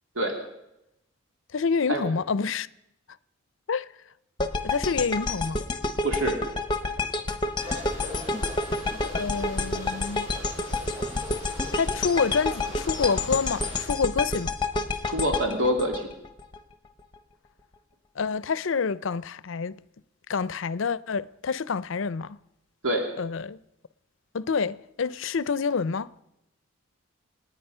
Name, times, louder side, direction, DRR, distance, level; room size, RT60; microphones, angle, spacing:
voice 1, 1.5-2.7 3.7-3.9 4.6-5.6 9.0-10.3 11.7-14.9 18.2-19.8 20.3-22.4 23.2-23.6 24.3-26.1, left 5 dB, 70° left, 0.5 m, -28 dB
sound 1, 4.4-16.6, left 3 dB, 20° left, 0.9 m, -29 dB
voice 2, 6.0-6.4 15.0-16.1 22.8-23.1, right 1 dB, 80° right, 2.7 m, -25 dB
sound 2, 7.6-13.8, left 1 dB, 30° right, 7.3 m, -41 dB
27.5 x 9.4 x 5.5 m
head